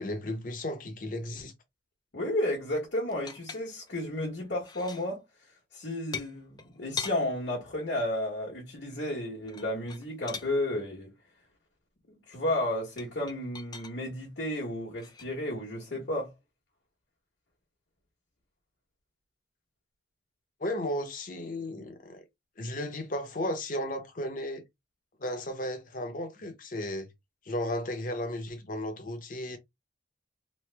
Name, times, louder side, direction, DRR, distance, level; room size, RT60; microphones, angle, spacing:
voice 1, 0.0-1.5 20.6-22.2 22.6-24.6 25.2-27.1 27.4-29.6, left 1 dB, 45° left, 0.8 m, -34 dB
voice 2, 2.1-5.2 5.7-11.1 12.1-16.3, left 1 dB, 70° left, 1.1 m, -32 dB
sound 1, 3.1-4.0 4.4-5.1 6.1-7.2 9.4-10.5 13.0-14.0 15.0-15.2, left 5 dB, 20° left, 0.3 m, -40 dB
3.1 x 2.1 x 3.3 m
head